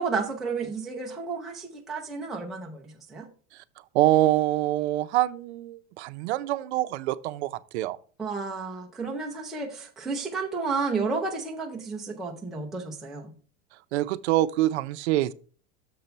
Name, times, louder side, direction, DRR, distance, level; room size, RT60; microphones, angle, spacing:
voice 1, 0.0-3.3 8.2-13.3, right 4 dB, ahead, 0.4 m, -32 dB
voice 2, 3.9-8.0 13.9-15.3, right 15 dB, 65° right, 0.6 m, -25 dB
6.8 x 5.4 x 4.3 m
supercardioid pair, 165°, 35 cm